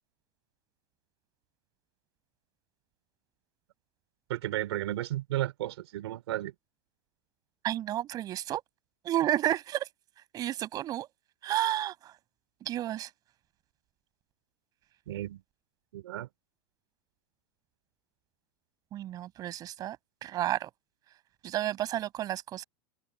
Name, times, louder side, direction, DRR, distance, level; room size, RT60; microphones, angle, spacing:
voice 1, 4.3-6.5 15.1-15.4 15.9-16.3, right 14 dB, 75° right, 5.0 m, -33 dB
voice 2, 7.6-8.6 9.0-9.9 10.3-11.1 11.4-12.1 12.6-13.1 18.9-20.0 20.2-20.7 21.4-22.6, right 13 dB, 25° right, 7.4 m, -31 dB
supercardioid pair, 165°, 14 cm